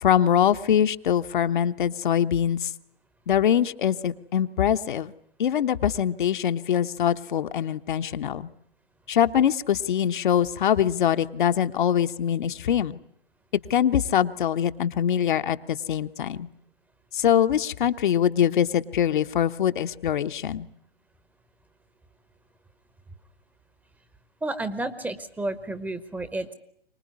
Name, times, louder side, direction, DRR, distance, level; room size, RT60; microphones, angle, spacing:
voice 1, 0.0-2.7 3.3-5.1 5.4-8.5 9.1-13.0 13.7-16.5 17.1-20.7, left 9 dB, 55° left, 10 dB, 1.1 m, -23 dB
voice 2, 24.4-26.5, right 2 dB, 5° right, 12 dB, 1.0 m, -31 dB
24.5 x 19.5 x 9.6 m, 0.70 s
hypercardioid pair, 130°, 30 cm